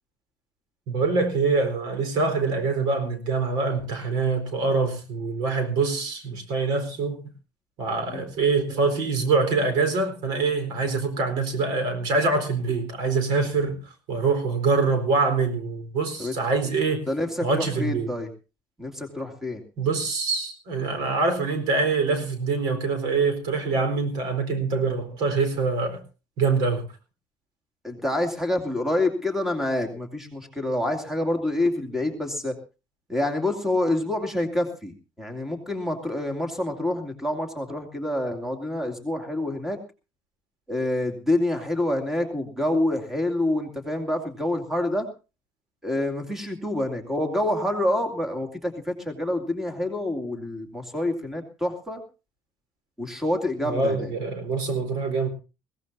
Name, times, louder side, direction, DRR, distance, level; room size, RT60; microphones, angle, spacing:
voice 1, 0.9-7.2 7.8-17.0 17.4-18.1 19.8-26.0 26.4-26.8 53.6-55.3, right 4 dB, 85° right, 4.3 m, -24 dB
voice 2, 17.1-18.3 18.8-19.6 27.8-32.6 33.1-39.8 40.7-45.1 45.8-52.0 53.0-54.1, left 1 dB, 5° right, 2.5 m, -27 dB
21.0 x 17.0 x 2.7 m
cardioid pair, 150°, 7 cm